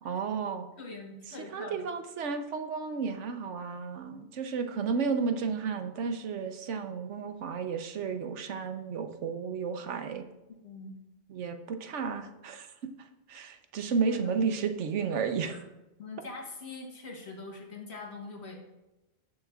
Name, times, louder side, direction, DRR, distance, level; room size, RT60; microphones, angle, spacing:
voice 1, 0.0-0.7 1.3-10.2 11.3-15.6, right 5 dB, 80° right, 7 dB, 1.1 m, -33 dB
voice 2, 0.8-1.8 10.6-10.9 14.1-14.3 15.5-15.6 16.0-18.6, left 3 dB, 65° left, 1 dB, 1.7 m, -43 dB
17.5 x 6.5 x 2.4 m, 1.0 s
omnidirectional pair, 1.2 m